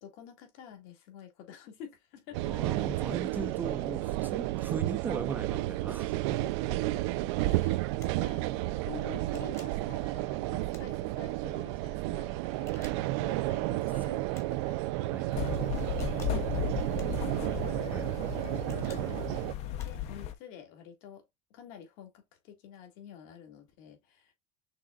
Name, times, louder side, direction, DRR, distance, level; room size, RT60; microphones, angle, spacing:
voice 1, 0.0-2.5 6.4-14.8 15.3-17.8 18.9-19.3 19.6-21.2 21.5-24.3, left 8 dB, 60° left, 2.2 m, -49 dB
sound 1, 2.3-19.5, right 17 dB, 75° right, 0.5 m, -32 dB
voice 2, 2.4-6.4 13.4-13.6 15.1-15.4 17.9-18.3, right 4 dB, 15° right, 0.5 m, -39 dB
sound 2, 8.0-8.3 9.2-9.9 10.7-11.3 12.5-13.2 14.3-14.7 15.8-16.5 17.0-17.5 18.4-19.1 19.8-20.2, left 4 dB, 20° left, 1.2 m, -56 dB
sound 3, 15.3-20.3, left 10 dB, 45° left, 0.8 m, -35 dB
6.0 x 3.7 x 2.3 m
cardioid pair, 155°, 14 cm